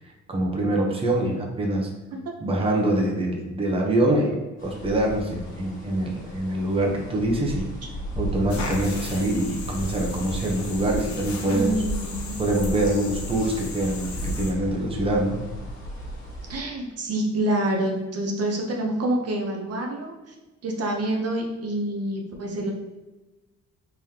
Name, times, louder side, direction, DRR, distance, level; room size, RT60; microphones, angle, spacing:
voice 1, 0.3-1.9 2.4-7.7 8.1-11.8 12.4-15.4, right 1 dB, 20° right, 0 dB, 0.8 m, -24 dB
sound 1, 4.6-16.6, equal, 25° left, 1.4 m, -35 dB
sound 2, 8.5-14.5, left 4 dB, 65° left, 0.9 m, -37 dB
voice 2, 11.5-12.3 16.5-20.3 20.6-22.7, right 1 dB, 55° right, 1 dB, 0.8 m, -27 dB
3.9 x 3.1 x 2.8 m, 1.1 s
cardioid pair, 90°, 30 cm